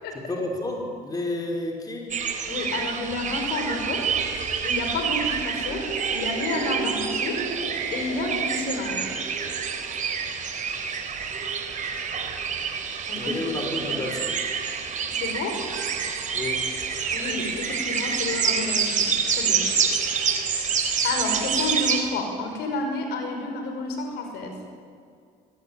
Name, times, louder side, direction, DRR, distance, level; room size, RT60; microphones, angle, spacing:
voice 1, 0.1-2.1 13.2-14.3 16.3-16.7, left 2 dB, 20° left, 1 dB, 5.2 m, -30 dB
sound 1, 2.1-22.0, right 6 dB, 50° right, 3.9 m, -27 dB
voice 2, 2.5-4.0 4.6-5.9 6.1-7.4 7.9-9.1 10.6-10.8 13.1-13.3 13.9-14.0 15.2-15.6 17.1-19.6 21.0-24.5, left 3 dB, 75° left, 4 dB, 5.6 m, -30 dB
24.0 x 20.5 x 9.0 m, 2.3 s
cardioid pair, 110°, 17 cm